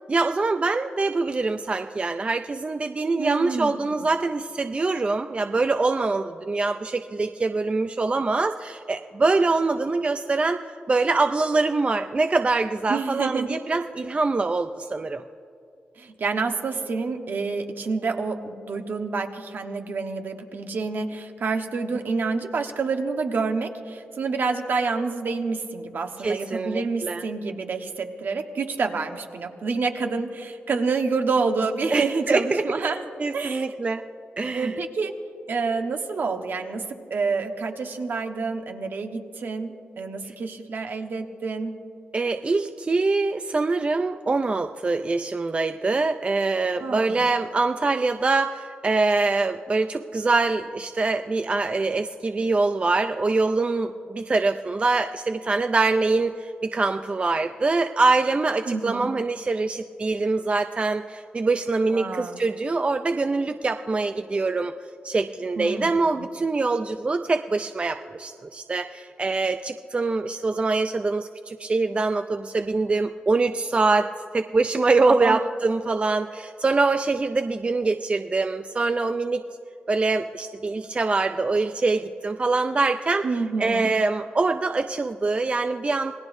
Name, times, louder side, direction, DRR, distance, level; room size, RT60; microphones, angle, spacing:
voice 1, 0.1-10.6 10.9-15.2 26.2-27.2 31.9-32.6 33.2-34.0 34.4-34.8 42.1-64.7 65.0-79.4 79.9-86.1, right 3 dB, 30° right, 8 dB, 0.4 m, -24 dB
voice 2, 3.2-3.8 12.9-13.6 16.0-33.1 33.3-33.7 34.5-35.2 35.5-41.8 46.8-47.3 58.7-59.1 61.9-62.4 65.6-65.9 66.2-66.3 75.1-75.4 83.2-83.9, right 4 dB, 65° right, 5 dB, 1.2 m, -28 dB
27.0 x 18.5 x 2.7 m, 2.6 s
cardioid pair, 85°, 4 cm